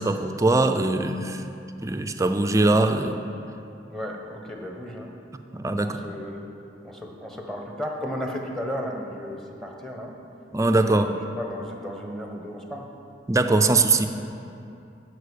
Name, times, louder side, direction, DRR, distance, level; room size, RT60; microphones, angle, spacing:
voice 1, 0.0-1.4 1.8-3.2 5.5-6.0 10.5-11.2 13.3-14.1, right 2 dB, 20° right, 7 dB, 0.5 m, -21 dB
voice 2, 3.9-5.1 5.7-6.5 6.8-10.1 10.9-12.9, equal, 5° left, 1 dB, 1.1 m, -34 dB
11.5 x 4.8 x 8.4 m, 2.6 s
head